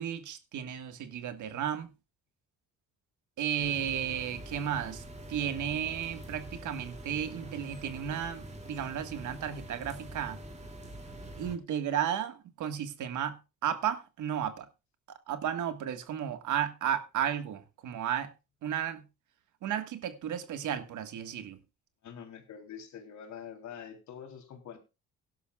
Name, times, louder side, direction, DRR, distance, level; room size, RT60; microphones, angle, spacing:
voice 1, 0.0-1.9 3.4-10.4 11.4-14.7 15.1-18.3 18.6-19.0 19.6-21.6, right 9 dB, 75° right, 1.6 m, -34 dB
sound 1, 3.6-11.6, right 1 dB, 20° right, 2.7 m, -45 dB
voice 2, 22.0-24.8, left 8 dB, 70° left, 3.4 m, -45 dB
17.5 x 11.5 x 2.3 m
cardioid pair, 90°, 30 cm